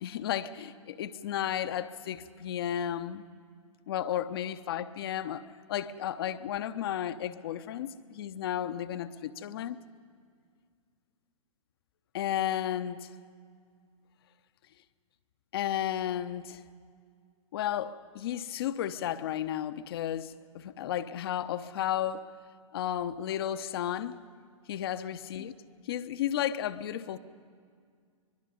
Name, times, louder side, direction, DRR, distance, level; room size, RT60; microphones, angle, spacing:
voice 1, 0.0-3.2 3.9-9.8 12.1-13.1 15.5-16.6 17.5-22.2 22.7-24.2 24.7-25.5 25.9-27.2, left 10 dB, 45° left, 0.8 m, -33 dB
24.5 x 21.5 x 5.5 m
figure-of-eight pair, 115°, 17 cm